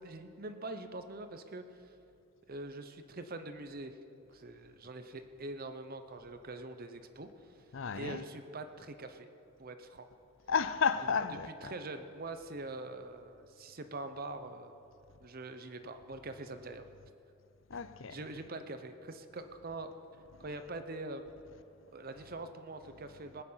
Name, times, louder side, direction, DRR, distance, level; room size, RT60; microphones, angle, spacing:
voice 1, 0.0-1.9 2.5-4.0 4.3-7.5 7.9-9.3 9.6-10.1 11.6-14.8 15.2-16.9 18.1-19.9 20.4-21.3 21.9-23.4, right 2 dB, 50° right, 0.8 m, -44 dB
voice 2, 7.7-8.2 10.5-11.7 17.7-18.2, left 6 dB, 70° left, 0.6 m, -32 dB
20.0 x 9.0 x 5.7 m
head